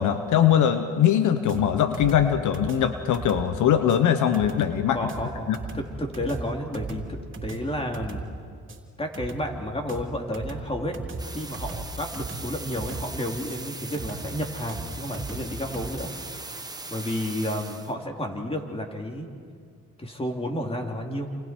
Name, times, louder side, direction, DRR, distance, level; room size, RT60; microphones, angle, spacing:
voice 1, 0.0-5.0 5.5-5.6, left 9 dB, 75° left, 9 dB, 1.1 m, -21 dB
sound 1, 1.5-15.9, right 4 dB, 40° right, 3.3 m, -38 dB
voice 2, 4.9-8.2 9.0-11.0 11.2-16.1 16.9-19.3 20.0-21.3, left 1 dB, 20° left, 2 dB, 3.4 m, -31 dB
sound 2, 11.2-17.9, right 2 dB, 15° right, 1.4 m, -40 dB
28.5 x 28.5 x 4.6 m, 2.1 s
cardioid pair, 90°, 30 cm